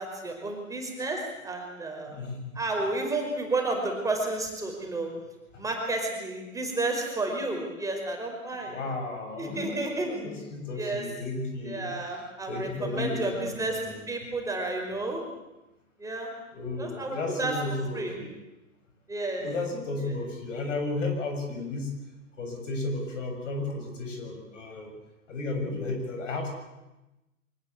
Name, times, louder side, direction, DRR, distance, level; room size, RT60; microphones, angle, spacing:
voice 1, 0.0-2.2 2.5-5.1 5.6-8.8 9.4-10.1 10.8-11.0 11.6-13.8 14.1-15.2 16.0-16.3 16.8-17.5 17.9-18.1 19.1-19.5, right 2 dB, 10° right, 1 dB, 5.1 m, -31 dB
voice 2, 2.1-2.5 5.5-5.6 8.6-11.9 12.5-14.0 16.5-18.3 19.4-21.9 22.4-24.9 25.3-26.5, left 2 dB, 60° left, 4 dB, 7.5 m, -33 dB
24.0 x 19.5 x 8.5 m, 1.0 s
figure-of-eight pair, 115°, 41 cm